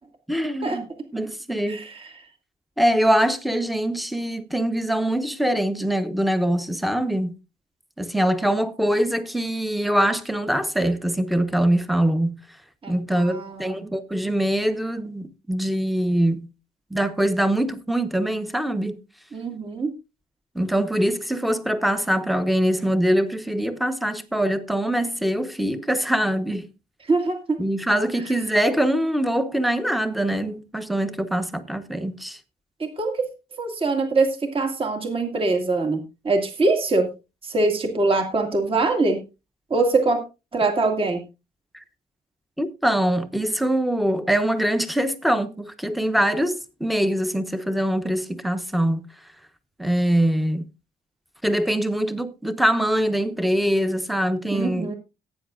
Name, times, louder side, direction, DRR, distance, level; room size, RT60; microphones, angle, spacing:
voice 1, 0.3-1.8 2.8-7.3 8.0-12.4 12.9-16.5 16.9-19.0 20.5-26.7 27.6-32.4 42.6-49.1 49.8-50.6 51.4-54.9, right 1 dB, ahead, 1.1 m, -23 dB
voice 2, 12.8-13.8 19.3-19.9 27.1-27.6 32.8-33.3 33.6-37.1 37.4-39.2 39.7-40.2 40.5-41.2 54.5-54.9, right 3 dB, 35° right, 2.2 m, -23 dB
17.5 x 9.3 x 2.5 m
cardioid pair, 120°, 17 cm